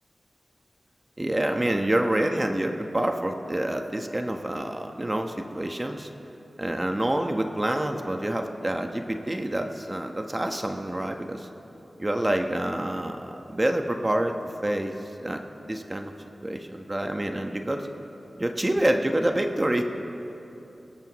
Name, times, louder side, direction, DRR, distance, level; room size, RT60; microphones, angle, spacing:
voice 1, 1.2-6.1 6.6-11.5 12.0-14.4 14.6-14.9 15.2-15.4 15.7-16.1 16.4-17.9 18.4-19.8, right 1 dB, 30° right, 4 dB, 1.1 m, -27 dB
21.5 x 17.0 x 3.1 m, 3.0 s
cardioid pair, 40°, 0 cm